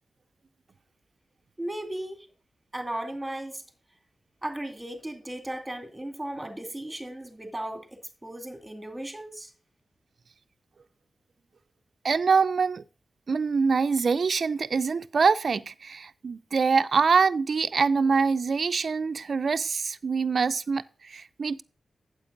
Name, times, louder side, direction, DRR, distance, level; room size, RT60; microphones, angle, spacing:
voice 1, 1.6-2.3 2.7-3.6 4.4-9.5, right 1 dB, 10° right, 2.3 m, -36 dB
voice 2, 12.0-12.8 13.3-21.6, right 5 dB, 65° right, 0.4 m, -24 dB
8.9 x 7.8 x 3.8 m
cardioid pair, 75°, 0 cm